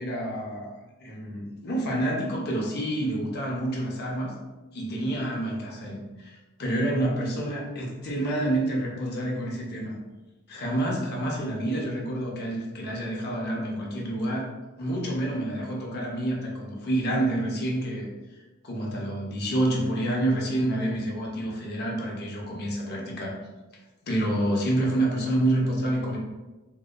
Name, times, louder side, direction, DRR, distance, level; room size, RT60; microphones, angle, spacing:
voice 1, 0.0-4.4 4.7-9.9 10.5-14.5 14.8-18.1 18.6-23.4 24.0-26.2, right 1 dB, 50° left, -2 dB, 0.5 m, -28 dB
2.6 x 2.1 x 2.3 m, 1.2 s
head